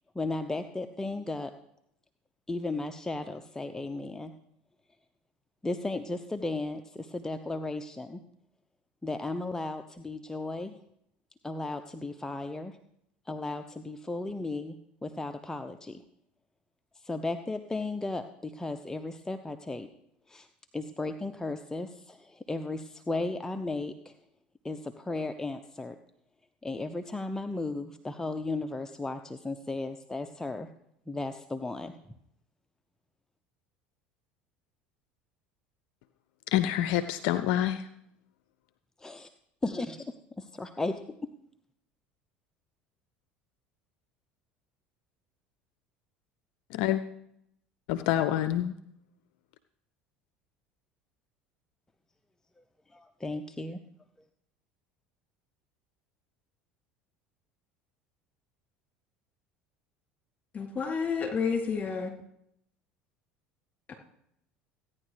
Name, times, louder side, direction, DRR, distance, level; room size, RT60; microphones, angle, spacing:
voice 1, 0.1-1.5 2.5-4.3 5.6-8.2 9.0-10.8 11.4-12.8 13.3-14.8 15.0-16.0 16.9-19.9 20.3-20.5 20.7-24.2 24.6-26.0 26.6-30.7 31.1-31.9 39.0-39.3 39.6-41.0 52.9-53.8, left 2 dB, 10° left, 7 dB, 0.7 m, -35 dB
voice 2, 36.5-37.8 46.7-47.0 47.9-48.7, left 12 dB, 70° left, 11 dB, 0.5 m, -27 dB
voice 3, 60.5-62.1 63.9-64.0, left 5 dB, 30° left, -1 dB, 3.3 m, -30 dB
16.0 x 9.8 x 3.4 m, 0.76 s
hypercardioid pair, 75°, 5 cm